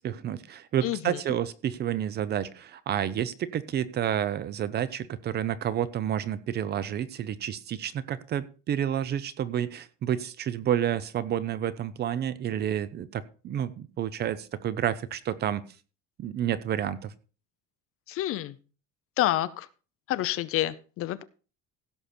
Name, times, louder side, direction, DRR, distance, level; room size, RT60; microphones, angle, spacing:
voice 1, 0.0-15.6 16.2-17.1, right 10 dB, 30° right, 16 dB, 0.6 m, -30 dB
voice 2, 0.8-1.2 18.1-18.6 19.2-19.7 20.1-21.2, left 14 dB, 45° left, 15 dB, 0.7 m, -28 dB
16.5 x 6.7 x 4.3 m, 0.35 s
cardioid pair, 175°, 32 cm